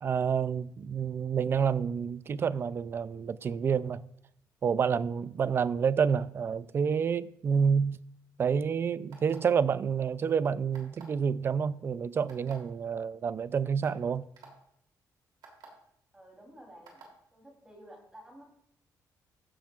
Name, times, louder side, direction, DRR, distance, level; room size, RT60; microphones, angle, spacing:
voice 1, 0.0-4.0 4.6-8.0 8.4-14.3, right 6 dB, 35° right, 0.3 m, -28 dB
sound 1, 9.1-9.6 10.7-11.2 12.3-12.5 13.3-13.4 13.8-14.0 14.4-14.5 15.4-15.7 16.9-17.1, right 6 dB, 85° right, 2.9 m, -51 dB
voice 2, 16.1-18.4, equal, 15° right, 3.2 m, -52 dB
15.0 x 10.5 x 2.4 m
wide cardioid pair, 175°, 7 cm